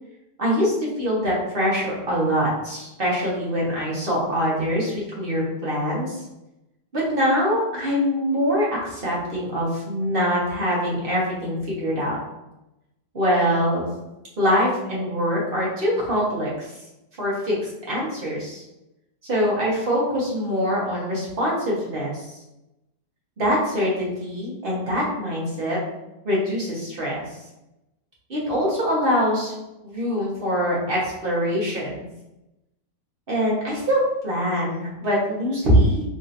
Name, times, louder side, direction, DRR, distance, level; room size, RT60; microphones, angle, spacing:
voice 1, 0.4-6.2 6.9-12.2 13.1-13.8 14.4-16.7 17.2-17.5 17.9-18.6 19.2-22.3 23.4-25.8 26.2-27.2 28.3-29.5 29.8-32.0 33.3-36.0, equal, 35° right, -5 dB, 1.1 m, -23 dB
4.1 x 2.8 x 2.5 m, 0.92 s
omnidirectional pair, 2.0 m